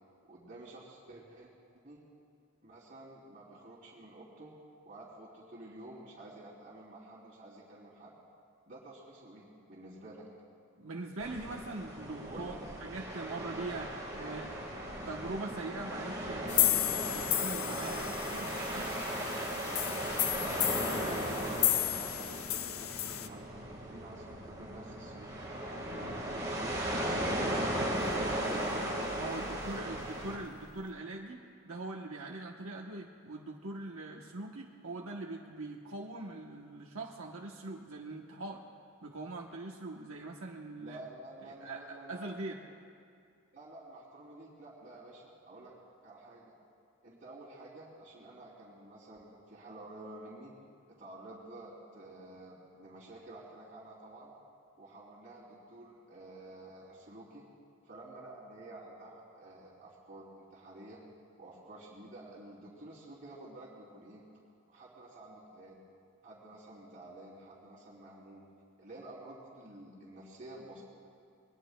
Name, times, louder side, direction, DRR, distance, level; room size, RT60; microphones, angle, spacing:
voice 1, 0.2-1.5 1.8-2.0 2.6-4.5 4.8-8.2 8.7-10.3 12.3-12.8 13.0-13.1 14.2-14.4 20.8-23.5 23.8-25.5 26.0-28.7 29.4-30.0 40.8-42.5 43.5-45.7 46.0-46.5 47.0-50.5 51.0-54.3 54.8-57.5 57.8-61.0 61.4-64.2 64.7-65.8 66.2-68.4 68.8-70.8, right 1 dB, 35° right, -9 dB, 3.3 m, -50 dB
voice 2, 10.8-14.5 15.0-19.0 29.1-38.6 39.0-41.0 41.5-42.6, right 2 dB, 80° right, 0 dB, 1.0 m, -42 dB
sound 1, 11.2-30.4, right 1 dB, 20° right, 3.8 m, -37 dB
sound 2, 16.5-23.3, left 12 dB, 80° left, 0.8 m, -33 dB
sound 3, 27.9-30.9, left 1 dB, 40° left, 1.9 m, -52 dB
28.0 x 22.0 x 2.2 m, 2.4 s
head